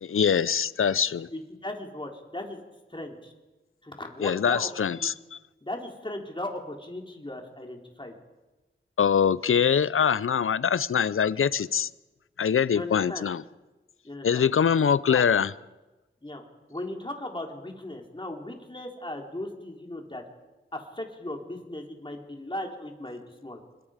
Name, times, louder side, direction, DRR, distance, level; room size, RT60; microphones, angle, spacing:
voice 1, 0.0-1.3 4.2-5.1 9.0-11.9 12.4-13.4 14.2-15.5, left 7 dB, 85° left, 19 dB, 0.6 m, -23 dB
voice 2, 1.3-2.6 2.9-3.3 3.8-4.7 5.0-5.1 5.6-8.2 12.7-13.3 14.0-14.4 15.1-15.3 16.2-16.4 16.7-20.2 20.7-23.6, left 1 dB, 25° left, 2 dB, 3.7 m, -37 dB
25.0 x 21.5 x 5.1 m, 1.1 s
cardioid pair, 45°, 21 cm